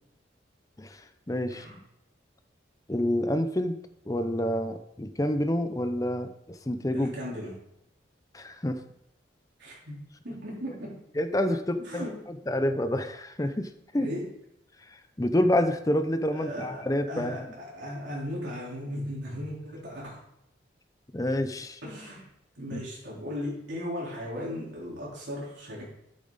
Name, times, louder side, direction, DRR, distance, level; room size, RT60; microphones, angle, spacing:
voice 1, 0.8-1.8 2.9-3.8 4.1-7.1 8.3-8.8 11.2-14.1 14.8-17.5 21.1-21.8 22.7-22.8, left 1 dB, 20° left, 9 dB, 0.6 m, -28 dB
voice 2, 6.9-7.5 9.6-10.0 10.2-10.9 11.4-12.2 14.0-14.3 16.3-20.2 21.8-22.3 22.6-25.8, equal, 75° right, -5 dB, 3.9 m, -37 dB
9.0 x 8.6 x 4.1 m, 0.81 s
head